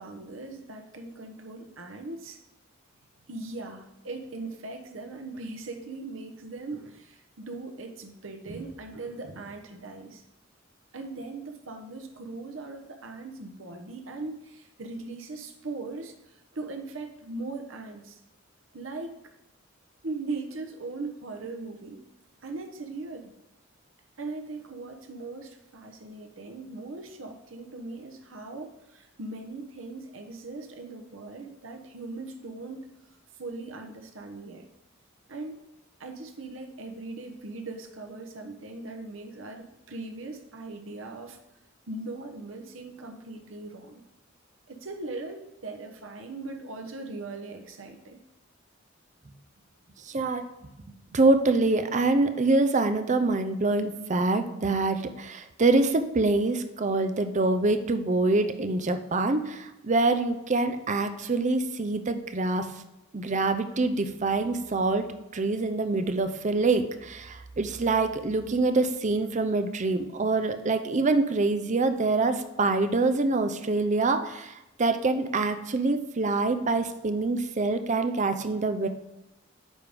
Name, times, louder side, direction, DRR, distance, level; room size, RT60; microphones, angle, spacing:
voice 1, 0.0-2.4 3.3-10.2 10.9-18.2 18.7-19.1 20.0-22.0 22.4-23.3 24.2-32.9 33.4-34.7 35.3-35.6 36.0-41.4 41.9-44.0 44.7-48.2, right 3 dB, 80° right, 4 dB, 0.9 m, -39 dB
voice 2, 50.1-50.5 51.1-62.7 63.1-65.0 65.3-78.9, right 3 dB, 40° right, 9 dB, 0.6 m, -25 dB
9.2 x 3.6 x 5.1 m, 0.95 s
head